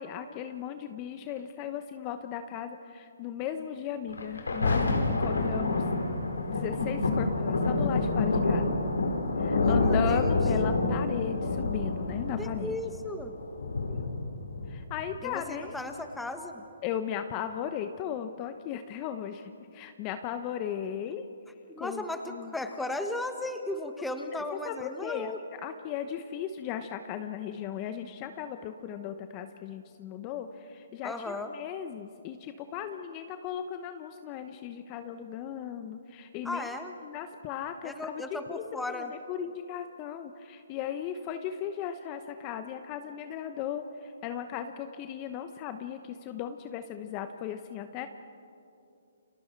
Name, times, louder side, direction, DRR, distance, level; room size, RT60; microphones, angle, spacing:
voice 1, 0.0-5.8 6.5-8.8 9.4-12.8 13.9-14.1 14.7-15.8 16.8-21.3 21.8-22.5 24.6-25.3 25.6-36.7 37.0-38.2 38.5-48.1, left 9 dB, 30° left, 8 dB, 1.0 m, -37 dB
Thunder, 4.1-15.1 15.8-15.9, left 3 dB, 90° left, 4.3 m, -28 dB
voice 2, 9.6-10.3 12.4-13.3 15.2-16.6 21.7-25.4 31.0-31.5 36.4-36.9 37.8-39.1, left 2 dB, 5° left, 6 dB, 1.5 m, -36 dB
30.0 x 27.0 x 4.7 m, 2.6 s
hypercardioid pair, 145°, 0 cm